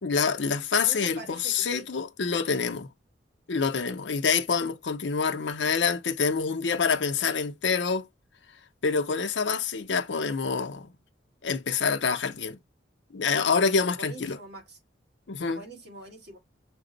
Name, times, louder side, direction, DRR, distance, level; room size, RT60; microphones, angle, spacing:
voice 1, 0.0-2.9 3.5-8.1 8.8-10.9 11.4-12.6 13.1-14.4 15.3-15.6, left 5 dB, 75° left, 0.6 m, -26 dB
voice 2, 0.8-1.9 14.0-14.8 15.5-16.4, right 2 dB, 65° right, 1.6 m, -44 dB
5.9 x 2.1 x 3.8 m
head